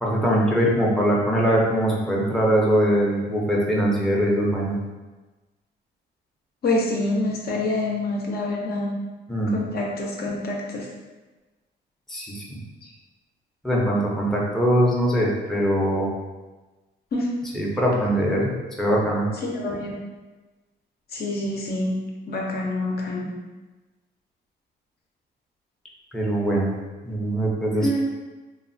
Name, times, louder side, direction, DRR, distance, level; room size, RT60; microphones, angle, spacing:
voice 1, 0.0-4.8 9.3-9.7 12.1-12.6 13.6-16.1 17.5-18.5 18.8-19.3 26.1-26.7 27.0-27.9, equal, ahead, -4 dB, 0.5 m, -22 dB
voice 2, 6.6-8.9 9.5-10.9 12.8-12.9 17.1-17.3 19.3-19.9 21.1-22.0 22.3-23.3 27.8-28.0, left 2 dB, 50° left, -2 dB, 0.6 m, -26 dB
3.1 x 2.1 x 2.5 m, 1.2 s
cardioid pair, 90°, 20 cm